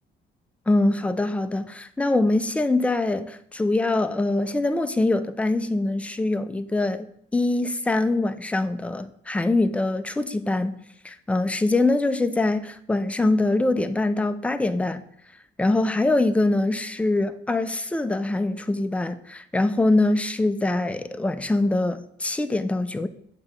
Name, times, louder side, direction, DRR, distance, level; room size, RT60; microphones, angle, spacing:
voice 1, 0.7-10.8 11.0-15.0 15.6-23.1, left 2 dB, 5° left, 0.4 m, -23 dB
6.6 x 2.9 x 5.5 m
cardioid pair, 90°, 20 cm